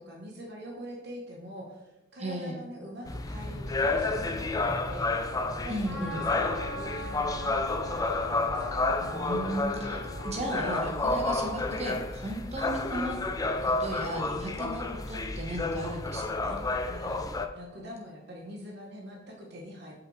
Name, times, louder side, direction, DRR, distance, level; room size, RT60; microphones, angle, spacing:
voice 1, 0.0-5.3 5.6-8.8 16.8-19.9, equal, 55° right, 0 dB, 1.0 m, -44 dB
voice 2, 2.2-2.6 5.7-6.3 9.0-13.2 13.6-16.6, right 1 dB, 35° right, -1 dB, 1.3 m, -35 dB
sound 1, 3.1-17.5, left 3 dB, 20° left, 0.4 m, -30 dB
Trumpet, 5.8-12.0, equal, ahead, 1.5 m, -42 dB
6.8 x 5.4 x 3.2 m, 1.0 s
head